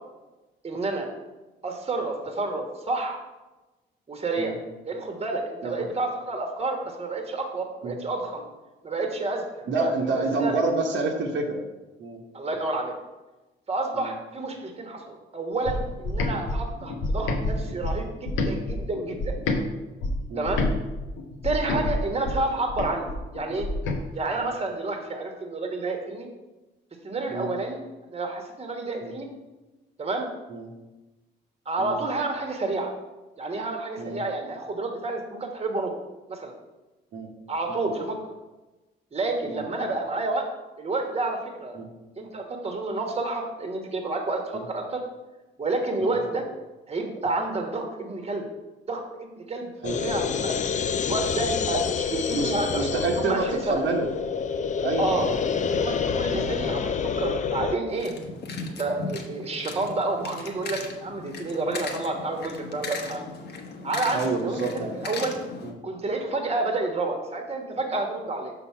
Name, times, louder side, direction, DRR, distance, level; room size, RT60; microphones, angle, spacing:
voice 1, 0.6-1.1 1.6-3.2 4.1-4.5 4.8-8.4 8.8-10.5 12.3-12.9 13.7-19.3 20.4-20.7 21.4-23.7 24.1-26.3 27.0-27.8 28.1-29.3 30.0-30.3 31.7-32.9 33.4-35.9 36.3-36.5 37.5-38.2 39.1-40.5 40.8-41.8 42.2-45.0 45.6-46.4 46.9-48.4 48.9-50.6 51.0-52.9 53.1-53.8 55.0-55.3 55.7-58.1 58.6-63.2 63.8-65.3 65.8-68.5, right 2 dB, 30° right, 3 dB, 1.2 m, -29 dB
voice 2, 9.7-11.6 12.0-12.2 13.9-14.1 16.3-16.4 20.3-20.5 21.6-21.9 24.4-24.5 27.3-27.5 29.0-29.1 30.5-30.7 31.8-32.0 34.0-34.2 37.1-37.3 37.7-37.9 39.4-39.6 41.7-41.9 44.5-44.6 46.0-46.2 49.8-50.0 52.3-54.1 54.8-55.3 56.3-56.5 64.1-64.9 65.6-65.7, right 3 dB, 70° right, 0 dB, 1.1 m, -28 dB
sound 1, 15.7-19.6 20.0-24.0, left 2 dB, 85° left, 0.9 m, -28 dB
sound 2, 49.8-57.8, left 6 dB, 40° left, 0.4 m, -27 dB
sound 3, 57.9-65.7, left 4 dB, 55° left, 1.0 m, -37 dB
5.8 x 3.8 x 5.7 m, 1.1 s
cardioid pair, 90°, 20 cm